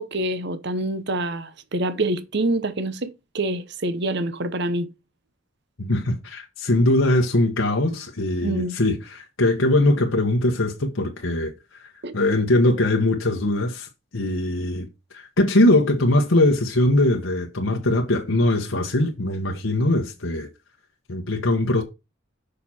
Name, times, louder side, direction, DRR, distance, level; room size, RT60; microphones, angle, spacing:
voice 1, 0.0-4.9 8.4-8.8 12.0-12.1, right 1 dB, 60° right, 1.0 m, -26 dB
voice 2, 5.8-11.5 12.1-13.9 14.1-14.9 15.1-20.5 21.1-21.8, left 1 dB, 80° left, 1.3 m, -21 dB
6.8 x 5.6 x 4.3 m
head